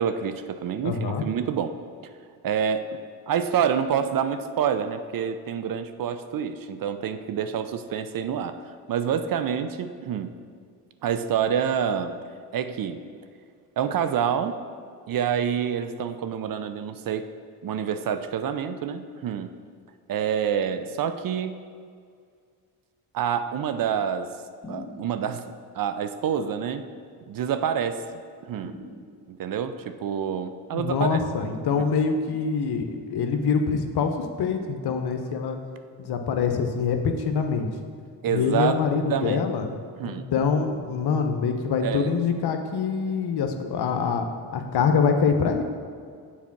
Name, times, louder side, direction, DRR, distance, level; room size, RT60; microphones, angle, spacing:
voice 1, 0.0-1.7 2.4-3.0 3.3-10.3 11.0-12.1 12.5-13.0 13.8-14.6 15.1-17.3 17.6-19.5 20.1-21.6 23.1-24.3 24.7-26.8 27.3-28.8 29.3-31.2 31.8-31.9 38.2-38.8 39.1-39.5 40.0-40.3 41.8-42.2, right 8 dB, 50° right, 10 dB, 0.6 m, -27 dB
voice 2, 0.8-1.2 30.7-35.6 36.0-37.7 38.3-39.7 40.0-44.3 44.5-45.6, left 5 dB, 55° left, 6 dB, 0.9 m, -25 dB
sound 1, 24.6-25.5 28.6-29.6, left 2 dB, 30° left, 1.8 m, -42 dB
7.2 x 4.2 x 5.9 m, 2.1 s
hypercardioid pair, 50°, 45 cm